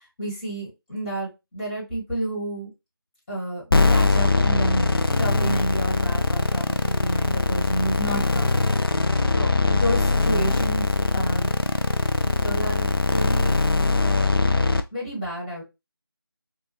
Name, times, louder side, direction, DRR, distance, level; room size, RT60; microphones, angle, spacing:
voice 1, 0.0-2.7 3.3-4.9 5.2-8.5 9.3-11.5 12.2-13.6 13.9-14.4 14.9-15.6, right 1 dB, 15° left, -7 dB, 1.7 m, -31 dB
sound 1, 3.7-14.8, left 3 dB, 65° left, 0.4 m, -21 dB
3.5 x 2.4 x 2.8 m, 0.24 s
figure-of-eight pair, 165°, 13 cm